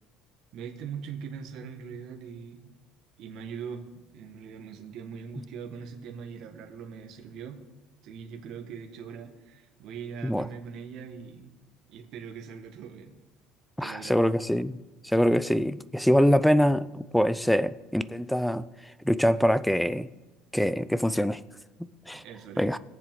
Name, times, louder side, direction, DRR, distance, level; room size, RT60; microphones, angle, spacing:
voice 1, 0.5-2.7 3.2-7.6 8.0-11.5 11.9-13.1 13.8-14.2 22.1-22.7, right 6 dB, 55° right, 3 dB, 1.7 m, -41 dB
voice 2, 13.8-14.8 15.0-18.7 19.0-20.1 20.5-21.4 22.1-22.2 22.6-22.8, equal, ahead, 16 dB, 0.4 m, -24 dB
21.5 x 7.5 x 3.8 m, 1.2 s
cardioid pair, 145°, 0 cm